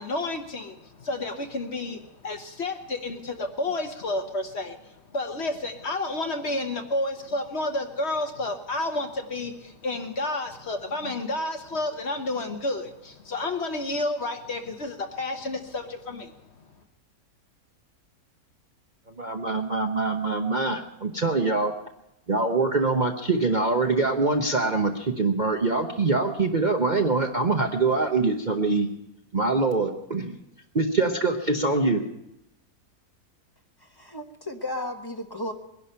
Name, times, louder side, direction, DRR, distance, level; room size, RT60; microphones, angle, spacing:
voice 1, 0.0-16.3, left 2 dB, 45° left, 5 dB, 1.2 m, -30 dB
voice 2, 19.2-21.7 22.3-28.9 29.3-30.4 30.7-32.0, right 3 dB, 35° right, 3 dB, 0.8 m, -24 dB
voice 3, 33.8-35.5, left 1 dB, 15° left, 4 dB, 1.0 m, -34 dB
21.0 x 11.0 x 5.6 m, 0.86 s
omnidirectional pair, 1.7 m